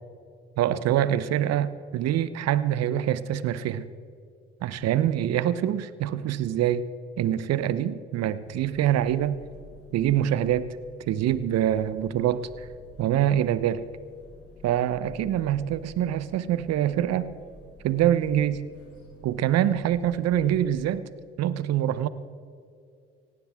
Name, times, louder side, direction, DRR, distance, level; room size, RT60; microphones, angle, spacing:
voice 1, 0.6-3.9 4.6-6.9 7.2-9.4 9.9-10.8 11.1-12.5 13.0-13.8 14.6-17.3 17.8-18.7 19.2-21.0 21.4-22.1, right 11 dB, 60° right, 15 dB, 0.9 m, -25 dB
sound 1, 8.4-21.0, left 1 dB, 50° left, 3.5 m, -50 dB
18.0 x 16.0 x 3.6 m, 2.4 s
hypercardioid pair, 55°, 29 cm